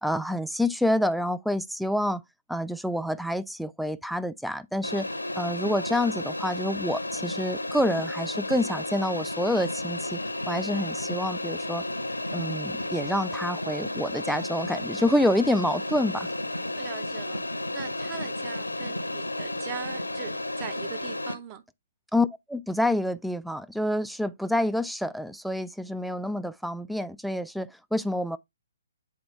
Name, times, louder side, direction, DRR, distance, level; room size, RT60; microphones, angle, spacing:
voice 1, 0.0-2.2 2.5-5.1 5.4-10.2 10.5-11.9 12.3-16.3 22.1-28.4, left 1 dB, ahead, 0.3 m, -27 dB
sound 1, 4.8-21.3, left 1 dB, 85° left, 0.8 m, -33 dB
voice 2, 16.8-17.4 17.7-21.6, right 9 dB, 25° right, 0.9 m, -41 dB
7.7 x 4.3 x 3.3 m
figure-of-eight pair, 130°, 0 cm